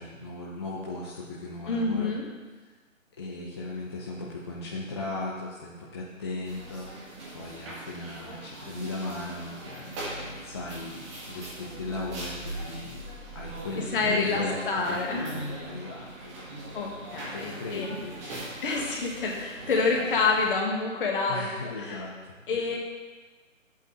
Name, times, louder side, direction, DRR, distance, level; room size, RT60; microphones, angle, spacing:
voice 1, 0.0-2.1 3.2-7.1 7.3-13.0 13.3-16.5 17.3-18.4 21.3-22.4, left 2 dB, 20° left, -5 dB, 0.6 m, -37 dB
voice 2, 1.7-2.3 13.9-15.3 16.7-18.0 18.6-21.5 21.8-22.0 22.5-22.8, left 4 dB, 40° left, -1 dB, 1.8 m, -28 dB
sound 1, 6.4-20.5, right 1 dB, 25° right, 1.9 m, -40 dB
12.0 x 8.3 x 3.0 m, 1.3 s
figure-of-eight pair, 145°, 40 cm